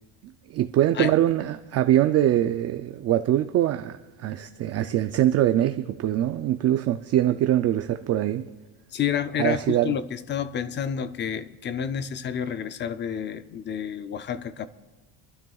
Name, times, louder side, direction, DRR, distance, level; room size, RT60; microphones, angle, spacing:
voice 1, 0.5-8.4 9.4-9.9, right 12 dB, 40° right, 0.4 m, -23 dB
voice 2, 8.9-14.7, left 8 dB, 30° left, 0.4 m, -29 dB
28.0 x 12.5 x 2.3 m
cardioid pair, 150°, 43 cm